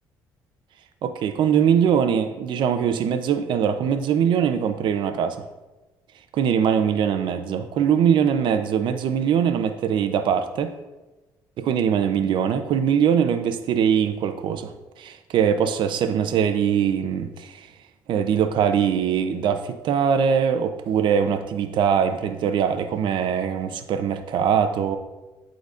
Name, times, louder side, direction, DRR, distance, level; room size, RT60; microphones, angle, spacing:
voice 1, 1.0-5.4 6.3-10.7 11.6-14.7 15.0-17.7 18.1-25.0, right 8 dB, 70° right, 8 dB, 0.7 m, -22 dB
11.5 x 4.0 x 2.6 m, 1.1 s
supercardioid pair, 80°, 8 cm